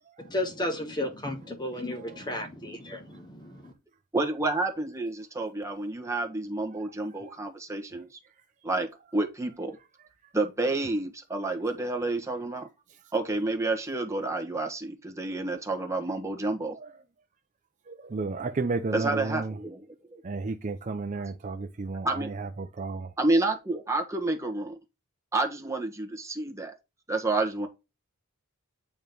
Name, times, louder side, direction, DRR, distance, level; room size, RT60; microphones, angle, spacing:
voice 1, 0.3-3.7, left 1 dB, 20° left, 1.1 m, -33 dB
voice 2, 1.9-2.3 3.1-3.2 6.7-7.4 12.9-13.1 16.7-16.9 17.9-19.6 20.2-23.1, right 3 dB, 35° right, 0.5 m, -33 dB
voice 3, 4.1-8.1 8.6-8.9 9.1-9.8 10.3-12.7 13.1-16.7 18.9-19.8 20.1-20.2 22.0-22.3 23.2-24.8 25.3-26.7 27.1-27.7, right 2 dB, 15° right, 1.3 m, -29 dB
8.8 x 3.1 x 5.3 m
head